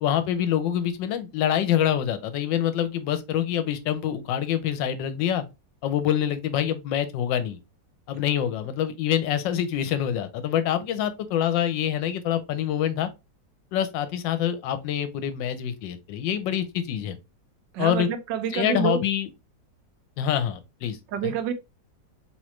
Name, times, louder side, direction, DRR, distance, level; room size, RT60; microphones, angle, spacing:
voice 1, 0.0-5.4 5.8-7.6 8.1-13.1 13.7-17.2 17.8-18.1 18.5-19.3 20.2-21.0 21.2-21.3, left 10 dB, 80° left, 1.3 m, -26 dB
voice 2, 17.7-19.0 21.1-21.5, right 9 dB, 80° right, 1.3 m, -27 dB
3.7 x 3.1 x 3.0 m
omnidirectional pair, 2.0 m